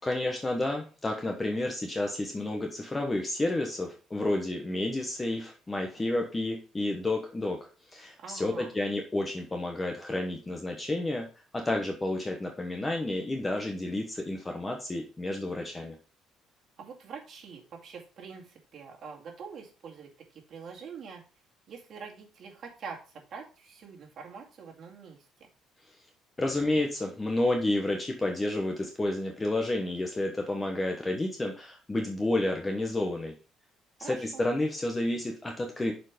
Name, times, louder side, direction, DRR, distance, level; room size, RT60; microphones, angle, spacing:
voice 1, 0.0-7.6 7.9-11.3 11.5-16.0 26.4-33.3 34.0-35.9, left 2 dB, 15° left, 2 dB, 1.1 m, -30 dB
voice 2, 8.2-8.7 16.8-21.2 21.7-25.3 34.0-34.5, right 5 dB, 45° right, -1 dB, 2.3 m, -45 dB
7.2 x 4.5 x 5.0 m, 0.36 s
cardioid pair, 135°, 0 cm